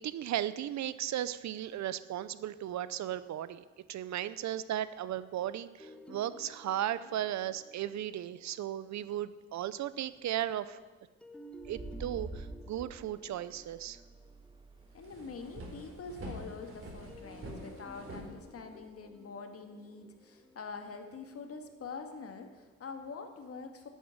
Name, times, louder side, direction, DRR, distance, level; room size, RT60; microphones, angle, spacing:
voice 1, 0.0-10.8 11.7-14.0, right 11 dB, 65° right, 16 dB, 0.7 m, -36 dB
sound 1, 5.8-9.6 11.2-15.7 17.1-22.3, equal, 5° left, 1.2 m, -54 dB
sound 2, 10.1-10.4 11.5-15.9, right 2 dB, 15° right, 1.7 m, -48 dB
sound 3, 14.4-14.5 14.8-19.0, right 1 dB, 45° right, 4.7 m, -46 dB
voice 2, 14.9-23.9, left 4 dB, 50° left, 6 dB, 2.0 m, -45 dB
10.5 x 9.3 x 9.6 m, 1.3 s
cardioid pair, 90°, 30 cm